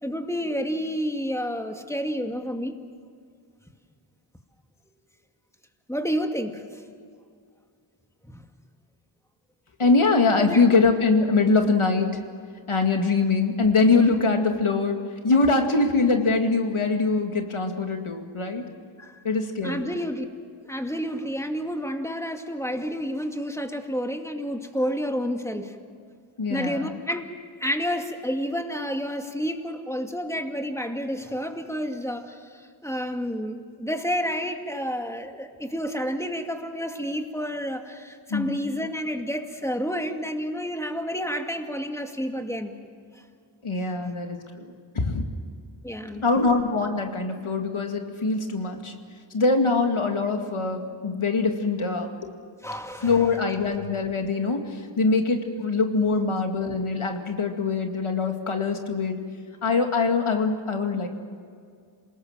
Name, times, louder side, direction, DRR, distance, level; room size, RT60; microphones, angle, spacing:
voice 1, 0.0-2.7 5.9-6.8 8.2-8.5 10.4-10.6 19.0-19.2 19.6-20.3 20.7-25.8 26.5-27.3 27.6-42.8 45.8-46.3 52.6-53.4, equal, 5° left, 4 dB, 2.3 m, -30 dB
voice 2, 9.8-12.2 12.7-15.0 15.2-18.6 19.2-19.9 26.4-26.9 38.3-38.5 43.6-44.7 44.9-45.2 46.2-48.9 49.3-52.3 53.0-59.2 59.6-61.1, left 3 dB, 85° left, 4 dB, 2.3 m, -23 dB
27.5 x 19.0 x 7.5 m, 2.2 s
wide cardioid pair, 55°, 48 cm